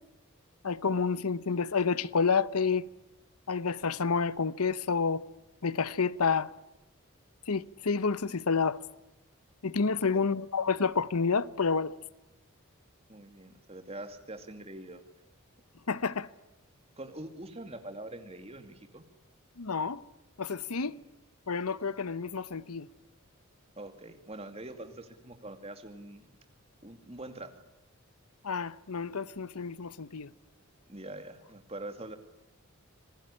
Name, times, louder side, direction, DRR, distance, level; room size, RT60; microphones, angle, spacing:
voice 1, 0.6-2.9 3.5-5.2 5.6-6.5 7.5-8.8 9.6-12.0 15.9-16.3 19.6-20.0 20.4-21.0 21.5-22.9 28.4-30.3, left 5 dB, 85° left, 0.9 m, -29 dB
voice 2, 13.1-15.0 17.0-19.1 20.9-21.0 23.8-26.3 26.8-27.5 30.9-32.2, right 1 dB, 25° right, 2.5 m, -44 dB
26.5 x 20.0 x 9.9 m
head